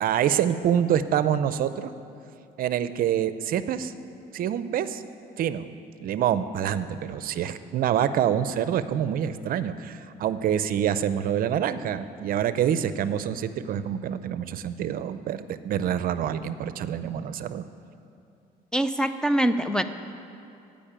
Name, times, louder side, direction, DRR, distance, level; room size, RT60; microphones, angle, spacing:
voice 1, 0.0-1.9 2.6-3.9 4.3-5.0 5.4-5.7 6.0-17.6, right 9 dB, 60° right, 13 dB, 0.5 m, -26 dB
voice 2, 18.7-19.8, right 1 dB, 5° left, 6 dB, 0.4 m, -23 dB
15.5 x 5.3 x 8.7 m, 2.6 s
cardioid pair, 110°, 17 cm